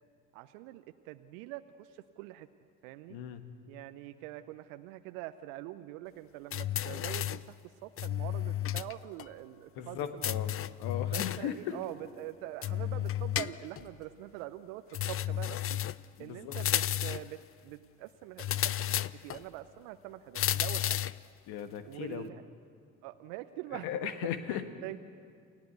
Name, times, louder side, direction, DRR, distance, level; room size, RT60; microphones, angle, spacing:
voice 1, 0.3-2.5 2.8-3.2 3.7-10.3 11.1-15.6 16.2-21.0 21.9-22.4 23.0-23.9 24.5-25.1, right 15 dB, 75° right, 11 dB, 0.8 m, -44 dB
voice 2, 3.1-3.4 9.7-10.5 10.8-11.7 16.2-16.6 21.5-22.3 23.8-24.7, left 10 dB, 70° left, 10 dB, 1.6 m, -37 dB
sound 1, 6.5-7.5 8.0-8.9 9.2-9.3 10.2-11.5 12.6-13.9 14.9-16.1 16.5-17.3 18.4-19.4 20.3-21.2, left 11 dB, 35° left, 0.6 m, -32 dB
28.5 x 16.0 x 8.1 m, 2.3 s
hypercardioid pair, 55°, 40 cm